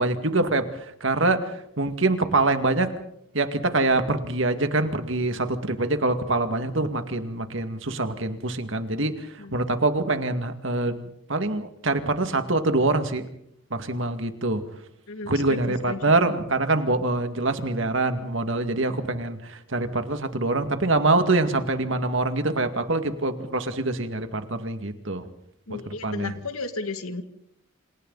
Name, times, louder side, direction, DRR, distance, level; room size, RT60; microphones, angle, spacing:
voice 1, 0.0-2.9 3.3-13.3 13.7-14.6 15.3-25.3 25.9-26.3, right 2 dB, 60° right, 8 dB, 2.2 m, -25 dB
voice 2, 15.1-16.4 18.9-19.0 25.7-27.2, left 3 dB, 90° left, 8 dB, 2.3 m, -34 dB
28.5 x 27.5 x 4.1 m, 0.73 s
head